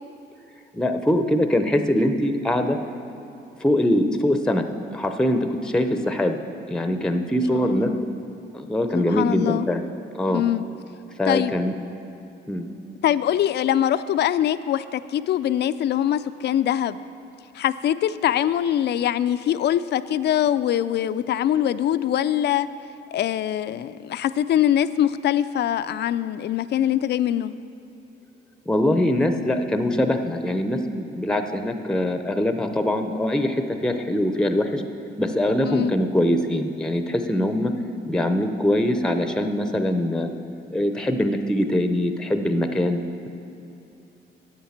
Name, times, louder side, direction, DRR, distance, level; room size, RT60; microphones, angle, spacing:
voice 1, 0.7-2.8 3.6-4.7 4.9-6.4 6.7-7.9 8.5-9.8 10.1-10.4 11.2-11.7 12.5-12.7 28.7-34.8 35.2-37.7 38.1-40.3 40.7-43.3, left 1 dB, 5° left, 7 dB, 0.6 m, -23 dB
voice 2, 7.5-8.0 8.9-9.7 10.3-10.7 11.3-11.5 13.0-17.0 17.5-22.7 23.1-27.5 35.6-35.9, left 11 dB, 60° left, 14 dB, 0.4 m, -23 dB
8.5 x 7.4 x 7.2 m, 2.7 s
cardioid pair, 90°, 20 cm